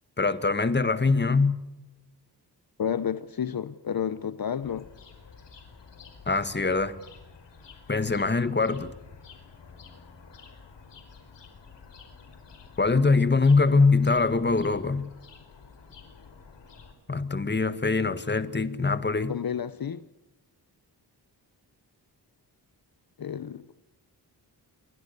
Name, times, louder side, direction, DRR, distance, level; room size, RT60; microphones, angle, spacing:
voice 1, 0.2-1.5 6.2-6.9 7.9-8.9 12.8-15.1 17.1-19.4, left 4 dB, 25° left, 12 dB, 1.7 m, -23 dB
voice 2, 2.8-4.9 19.3-20.0 23.2-23.7, left 8 dB, 55° left, 14 dB, 1.0 m, -31 dB
sound 1, 4.6-16.9, left 5 dB, 80° left, 5.0 m, -50 dB
27.5 x 23.0 x 6.8 m, 0.96 s
wide cardioid pair, 105°, 42 cm